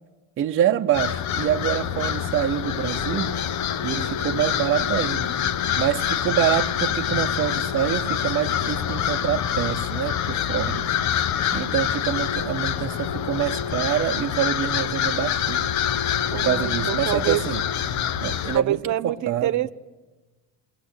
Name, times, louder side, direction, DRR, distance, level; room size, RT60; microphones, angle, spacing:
voice 1, 0.4-3.3 3.8-5.3 5.8-10.9 11.5-15.7 16.3-17.6 18.2-19.7, right 11 dB, 35° right, 0.8 m, -26 dB
sound 1, 0.9-18.6, left 9 dB, 50° left, 1.0 m, -26 dB
voice 2, 10.6-11.5 16.3-17.4 18.5-19.7, right 13 dB, 50° right, 1.0 m, -27 dB
28.5 x 22.5 x 8.6 m
cardioid pair, 165°, 36 cm